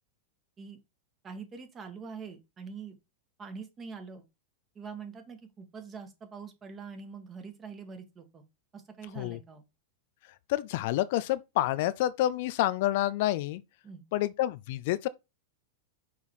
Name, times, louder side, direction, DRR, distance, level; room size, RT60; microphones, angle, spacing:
voice 1, 1.2-3.0 3.4-4.2 4.7-8.4 8.7-9.6 13.8-14.0, right 5 dB, 25° right, 1.7 m, -44 dB
voice 2, 10.5-13.6 14.1-15.1, left 14 dB, 60° left, 0.4 m, -28 dB
5.8 x 4.0 x 4.7 m
hypercardioid pair, 105°, 0 cm